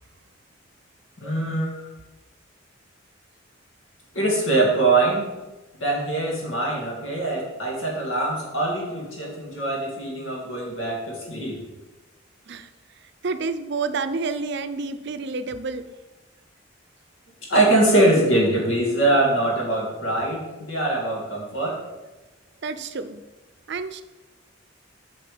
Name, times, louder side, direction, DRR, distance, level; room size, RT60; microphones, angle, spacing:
voice 1, 1.2-1.7 4.1-5.3 5.8-11.6 17.5-21.8, right 2 dB, 80° left, -1 dB, 2.7 m, -22 dB
voice 2, 13.2-15.9 22.6-23.2 23.7-24.0, right 4 dB, 60° right, 11 dB, 0.6 m, -29 dB
7.7 x 6.3 x 5.2 m, 1.1 s
head